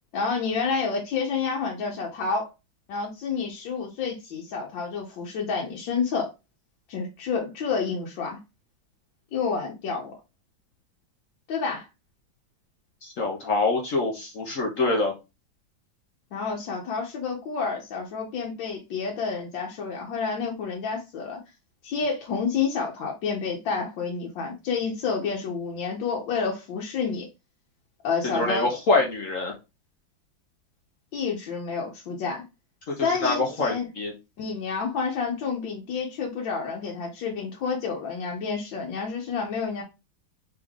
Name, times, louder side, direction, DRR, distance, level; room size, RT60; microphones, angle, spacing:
voice 1, 0.1-2.5 2.9-6.3 6.9-8.4 9.3-10.1 11.5-11.9 16.3-21.4 21.8-27.3 28.0-28.7 31.1-32.4 33.0-33.9 34.4-39.8, left 5 dB, 90° left, 1.6 m, -29 dB
voice 2, 13.0-15.1 28.3-29.5 32.9-34.1, left 3 dB, 55° left, 1.0 m, -25 dB
3.6 x 3.5 x 3.5 m
omnidirectional pair, 2.0 m